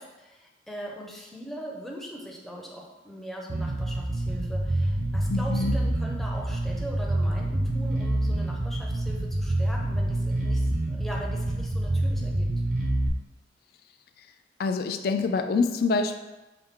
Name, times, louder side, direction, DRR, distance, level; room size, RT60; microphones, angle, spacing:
voice 1, 0.0-12.5, equal, ahead, -2 dB, 0.5 m, -40 dB
Bass guitar, 3.5-13.1, right 1 dB, 45° right, 0.5 m, -27 dB
voice 2, 5.3-5.7 14.6-16.2, left 4 dB, 55° left, 7 dB, 0.3 m, -26 dB
5.6 x 2.1 x 3.6 m, 1.1 s
head